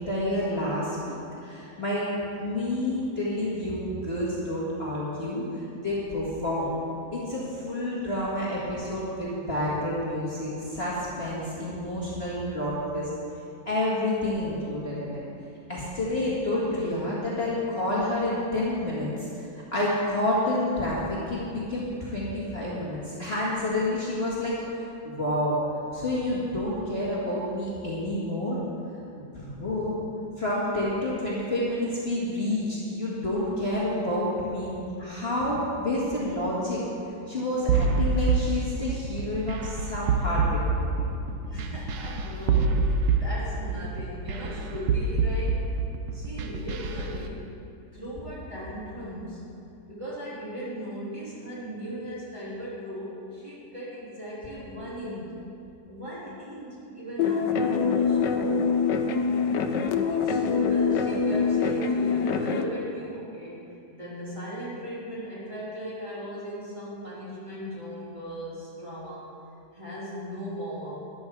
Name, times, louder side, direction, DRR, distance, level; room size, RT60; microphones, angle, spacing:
voice 1, 0.0-2.1 2.4-6.8 7.1-13.1 13.7-15.2 15.7-19.3 19.7-24.6 25.0-25.6 25.9-28.6 29.2-29.9 30.4-36.8 37.3-41.0, left 1 dB, 35° left, -7 dB, 2.1 m, -29 dB
sound 1, 37.7-47.2, right 4 dB, 85° right, 1.4 m, -26 dB
voice 2, 41.5-45.7 46.1-47.5 47.9-49.4 49.8-55.3 55.9-58.7 59.9-63.6 63.9-69.3 69.7-71.0, equal, 15° right, -9 dB, 3.3 m, -37 dB
sound 2, 57.2-62.6, left 5 dB, 80° left, 1.4 m, -24 dB
13.0 x 10.5 x 4.7 m, 2.6 s
omnidirectional pair, 1.9 m